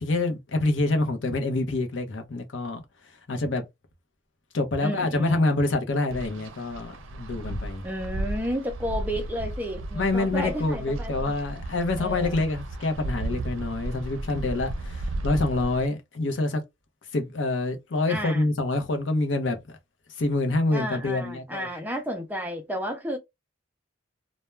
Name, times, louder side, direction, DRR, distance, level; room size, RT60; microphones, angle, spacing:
voice 1, 0.0-3.6 4.5-7.8 9.9-16.6 17.1-19.6 20.1-21.7, left 2 dB, 70° left, 0.6 m, -26 dB
voice 2, 4.8-5.5 7.8-11.3 12.0-12.4 18.1-18.5 20.7-23.2, equal, 10° right, 0.4 m, -32 dB
Wind, 6.1-15.9, right 1 dB, 80° right, 0.5 m, -34 dB
2.2 x 2.1 x 3.0 m
head